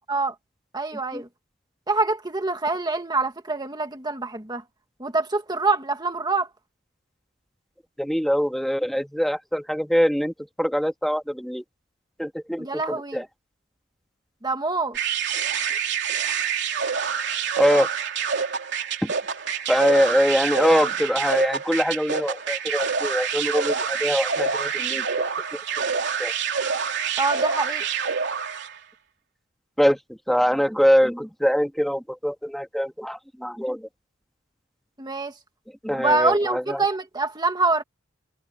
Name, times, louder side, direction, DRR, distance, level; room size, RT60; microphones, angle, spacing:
voice 1, 0.7-1.3 1.9-4.6 5.0-6.5 12.6-13.3 14.4-15.0 27.2-27.8 35.0-35.3 35.9-37.8, right 3 dB, 20° right, 1.9 m, -25 dB
voice 2, 8.0-11.6 12.2-13.2 17.6-17.9 19.0-19.1 19.7-25.3 25.8-25.9 26.2-26.3 29.8-30.0 30.3-33.9 35.8-36.8, equal, ahead, 2.1 m, -23 dB
sound 1, 14.9-28.8, right 6 dB, 60° right, 3.2 m, -27 dB
head